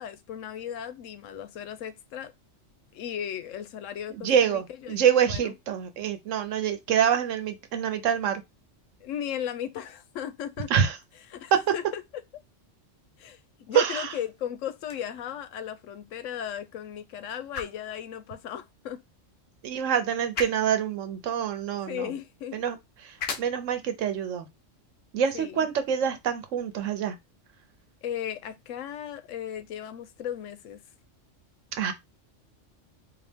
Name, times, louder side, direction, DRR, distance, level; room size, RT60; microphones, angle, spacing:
voice 1, 0.0-2.3 2.9-5.5 9.0-10.7 11.3-12.0 13.2-19.0 21.9-22.6 25.3-25.6 28.0-30.8, left 9 dB, 85° left, 1.0 m, -36 dB
voice 2, 4.1-8.4 10.7-11.0 11.5-11.6 13.7-14.1 19.6-22.1 22.5-22.8 23.0-24.5 25.1-27.2 31.7-31.9, right 8 dB, 85° right, 1.1 m, -26 dB
sound 1, 14.7-26.8, left 5 dB, 60° left, 0.9 m, -44 dB
4.1 x 2.6 x 3.4 m
omnidirectional pair, 1.3 m